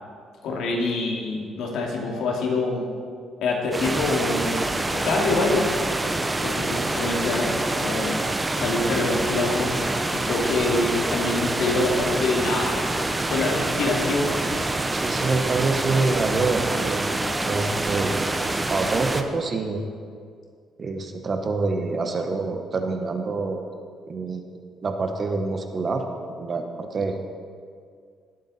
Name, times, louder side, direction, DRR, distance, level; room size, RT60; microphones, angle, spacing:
voice 1, 0.4-2.9 3.4-4.7 4.9-5.7 6.4-8.1 8.6-9.7 10.1-12.9 13.3-14.3, left 3 dB, 70° left, -1 dB, 2.6 m, -25 dB
sound 1, 3.7-19.2, right 2 dB, 15° right, 0.7 m, -26 dB
voice 2, 14.9-17.0 17.4-18.3 18.7-19.8 20.8-23.7 24.1-24.5 24.8-26.0 26.3-27.3, right 3 dB, 35° right, 5 dB, 1.1 m, -26 dB
18.5 x 8.1 x 4.2 m, 2.2 s
cardioid pair, 135°, 0 cm